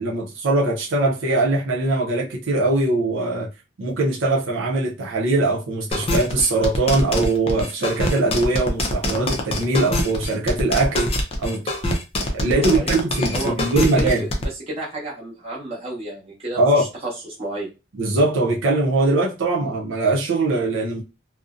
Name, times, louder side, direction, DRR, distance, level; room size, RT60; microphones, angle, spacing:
voice 1, 0.0-3.5 3.8-11.1 11.4-11.7 12.3-14.2 16.6-16.9 18.0-21.0, right 2 dB, 85° right, 0.6 m, -21 dB
sound 1, 5.9-14.4, left 1 dB, 30° left, 0.4 m, -24 dB
voice 2, 12.5-12.9 13.3-14.3 14.7-17.1 17.4-17.7, right 1 dB, 30° right, 1.0 m, -31 dB
2.6 x 2.1 x 2.4 m
head